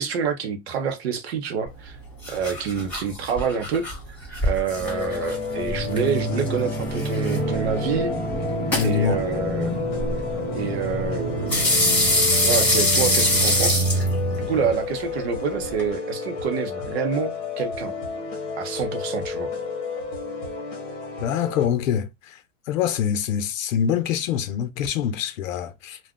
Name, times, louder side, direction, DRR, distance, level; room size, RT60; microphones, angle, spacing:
voice 1, 0.0-2.0 2.3-3.9 4.4-8.1 8.8-9.7 10.5-11.7 12.4-13.9 14.4-17.9 18.6-19.5, right 6 dB, 55° right, 0.8 m, -27 dB
sound 1, 1.7-15.9, left 1 dB, 5° left, 1.3 m, -26 dB
sound 2, 4.8-21.7, left 5 dB, 30° left, 1.0 m, -32 dB
sound 3, 4.8-14.7, right 2 dB, 10° right, 1.1 m, -28 dB
voice 2, 8.7-9.2 21.2-22.4 22.7-26.0, left 8 dB, 85° left, 0.7 m, -25 dB
2.4 x 2.3 x 3.5 m
supercardioid pair, 175°, 38 cm